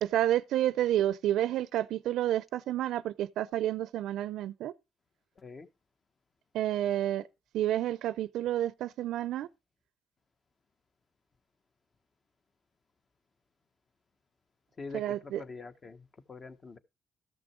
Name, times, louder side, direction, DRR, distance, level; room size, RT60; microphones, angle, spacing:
voice 1, 0.0-4.7 6.5-7.2 7.5-9.5 14.9-15.4, right 12 dB, 85° right, 0.4 m, -30 dB
voice 2, 5.4-5.7 14.8-16.8, left 4 dB, 35° left, 1.2 m, -45 dB
13.5 x 6.2 x 4.5 m
cardioid pair, 90°, 0 cm